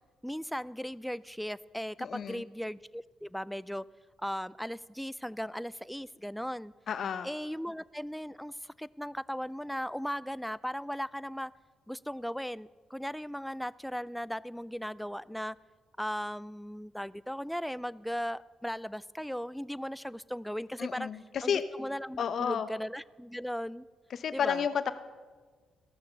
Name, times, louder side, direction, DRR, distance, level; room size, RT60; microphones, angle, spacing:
voice 1, 0.2-3.9 4.2-6.7 7.2-11.5 11.9-15.6 16.0-21.1 21.4-23.8 24.3-24.7, equal, ahead, 20 dB, 0.3 m, -37 dB
voice 2, 2.0-2.4 6.9-7.3 20.8-21.6 22.2-22.7 24.1-24.9, left 7 dB, 60° left, 13 dB, 0.8 m, -31 dB
15.0 x 6.6 x 7.1 m, 1.4 s
supercardioid pair, 60°, 0 cm